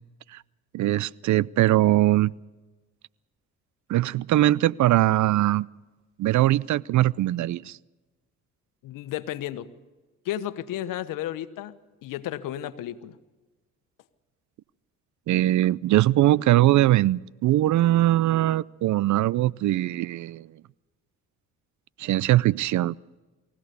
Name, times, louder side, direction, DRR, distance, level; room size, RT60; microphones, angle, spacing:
voice 1, 0.7-2.3 3.9-5.7 6.2-7.8 15.3-20.5 22.0-22.9, right 15 dB, 60° right, 0.6 m, -21 dB
voice 2, 8.8-9.7 10.2-11.7 12.0-13.2, left 12 dB, 75° left, 1.3 m, -33 dB
23.5 x 16.5 x 6.9 m
supercardioid pair, 70°, 33 cm